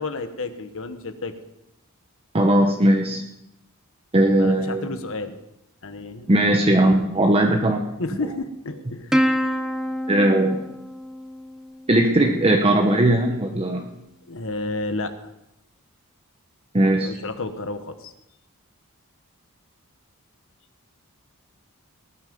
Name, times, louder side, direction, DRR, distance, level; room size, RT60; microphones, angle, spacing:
voice 1, 0.0-1.3 4.4-5.4 5.8-6.4 6.7-7.0 8.0-9.1 14.3-15.2 17.0-18.1, left 2 dB, 65° left, 9 dB, 1.3 m, -31 dB
voice 2, 2.3-3.2 4.1-4.9 6.3-7.9 10.1-10.6 11.9-13.8 16.7-17.1, right 1 dB, 25° right, 2 dB, 1.0 m, -18 dB
Plucked string instrument, 9.1-11.9, equal, 5° right, 1.0 m, -26 dB
19.0 x 9.6 x 5.4 m, 0.86 s
head